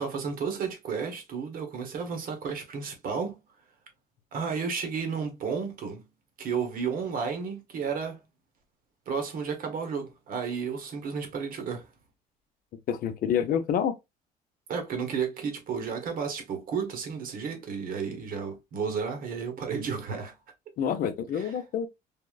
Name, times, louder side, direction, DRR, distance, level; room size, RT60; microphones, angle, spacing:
voice 1, 0.0-3.4 4.3-6.0 6.4-8.2 9.1-11.9 14.7-20.3 21.3-21.5, right 6 dB, 60° right, 0.9 m, -32 dB
voice 2, 12.9-13.9 20.8-21.9, left 8 dB, 60° left, 0.5 m, -27 dB
3.6 x 2.0 x 2.2 m
cardioid pair, 110°, 17 cm